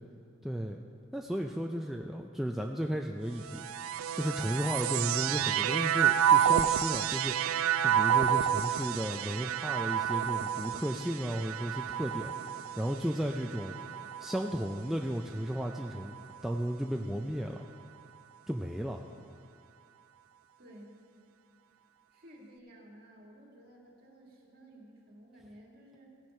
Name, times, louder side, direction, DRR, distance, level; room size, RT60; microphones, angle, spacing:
voice 1, 0.4-0.8 1.1-3.7 4.1-7.6 7.8-13.8 14.2-16.1 16.4-17.7 18.5-19.0, equal, ahead, 1 dB, 0.3 m, -34 dB
sound 1, 3.4-14.9 15.6-16.4, right 9 dB, 85° right, 0.3 m, -30 dB
voice 2, 20.6-21.0 22.1-26.2, right 1 dB, 45° right, -2 dB, 2.1 m, -54 dB
16.0 x 7.5 x 5.5 m, 2.4 s
head